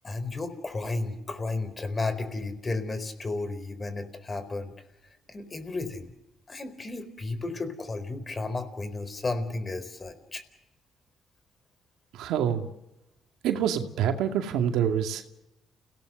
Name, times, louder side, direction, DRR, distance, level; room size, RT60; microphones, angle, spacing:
voice 1, 0.0-4.7 5.3-6.1 6.5-10.4, left 3 dB, 30° left, 11 dB, 4.2 m, -33 dB
voice 2, 12.1-12.7 13.4-15.2, right 9 dB, 90° right, 6 dB, 2.4 m, -26 dB
30.0 x 18.0 x 6.6 m, 0.89 s
cardioid pair, 90°, 0 cm